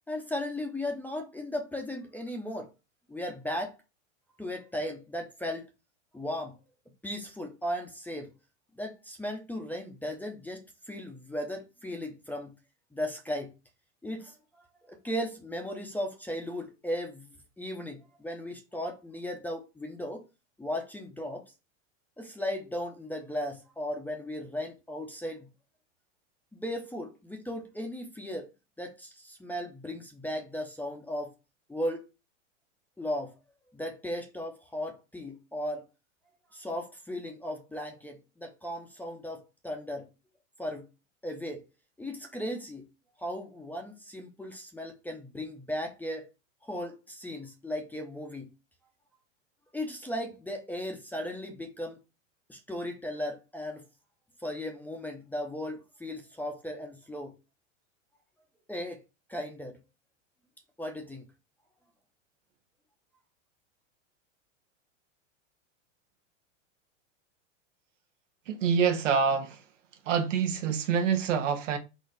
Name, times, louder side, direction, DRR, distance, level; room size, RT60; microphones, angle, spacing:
voice 1, 0.1-2.7 3.1-3.7 4.4-5.6 6.1-6.6 7.0-8.3 8.8-12.5 12.9-13.5 14.0-14.3 14.9-20.2 20.6-21.4 22.2-25.5 26.6-28.5 28.8-31.3 31.7-32.1 33.0-33.3 33.7-35.8 36.5-40.1 40.6-40.9 41.2-41.6 42.0-42.9 43.2-46.3 46.6-48.5 49.7-52.0 52.5-53.8 54.4-57.3 58.7-59.0 59.3-59.8 60.8-61.2, left 1 dB, 5° left, 0.6 m, -36 dB
voice 2, 68.5-69.6 70.1-71.8, right 6 dB, 80° right, 1.0 m, -26 dB
4.1 x 2.4 x 3.9 m
hypercardioid pair, 115°, 37 cm